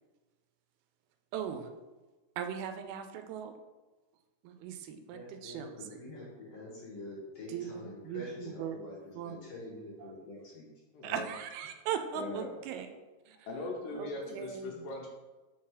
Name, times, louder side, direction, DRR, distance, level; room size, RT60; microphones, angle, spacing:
voice 1, 1.3-1.7 2.4-3.6 4.4-6.0 7.5-8.8 9.2-9.4 10.0-10.1 11.0-13.0 13.3-13.4 13.9-14.8, right 8 dB, 85° right, 7 dB, 2.5 m, -39 dB
voice 2, 5.1-8.9 9.2-10.7, left 1 dB, 55° left, -4 dB, 2.1 m, -46 dB
voice 3, 10.9-11.2 12.1-12.5 13.5-15.1, left 2 dB, 70° left, -1 dB, 2.3 m, -40 dB
5.9 x 4.2 x 4.7 m, 1.2 s
omnidirectional pair, 4.3 m